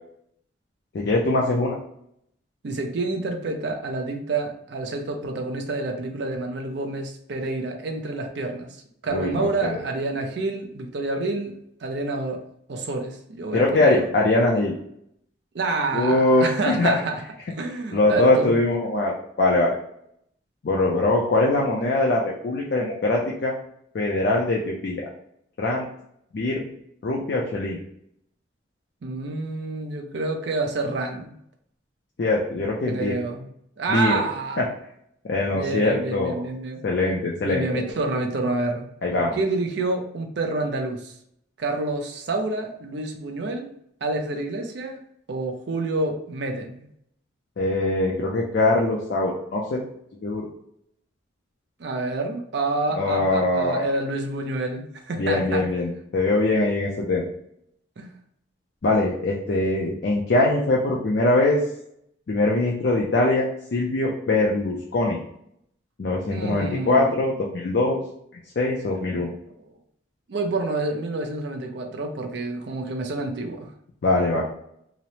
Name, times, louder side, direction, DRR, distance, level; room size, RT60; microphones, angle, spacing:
voice 1, 0.9-1.8 9.1-9.8 13.5-14.7 15.9-16.9 17.9-19.7 20.6-23.5 23.9-25.0 25.6-25.9 26.3-26.7 27.0-27.8 32.2-33.1 33.9-34.1 35.3-36.4 36.8-37.9 39.0-39.3 47.6-49.8 50.2-50.4 53.0-53.9 55.1-57.2 58.8-61.6 62.3-65.2 66.0-68.0 68.6-69.3 74.0-74.4, left 2 dB, 55° left, -2 dB, 0.4 m, -22 dB
voice 2, 2.6-8.8 9.0-11.5 11.8-12.4 12.7-14.1 15.5-17.2 17.5-18.5 29.0-31.4 32.9-33.5 33.8-34.6 35.5-36.8 37.4-38.9 39.3-41.1 41.6-43.7 44.0-45.0 45.3-46.9 51.8-55.6 58.0-58.1 66.3-67.1 69.0-69.1 69.6-69.7 70.3-73.7, right 2 dB, 60° right, 3 dB, 0.4 m, -28 dB
2.9 x 2.0 x 2.7 m, 0.72 s
head